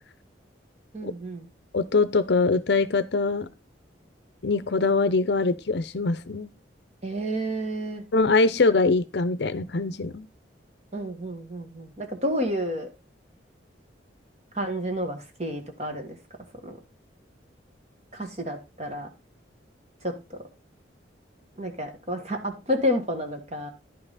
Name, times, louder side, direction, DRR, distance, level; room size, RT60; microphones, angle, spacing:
voice 1, 0.9-1.5 7.0-8.0 10.9-12.9 14.5-16.2 16.6-16.8 18.1-19.1 20.0-20.4 21.6-23.7, equal, 35° right, 1.6 m, -30 dB
voice 2, 1.7-3.5 4.4-6.5 8.1-10.3, left 3 dB, 60° left, 0.6 m, -23 dB
11.0 x 5.7 x 4.0 m
head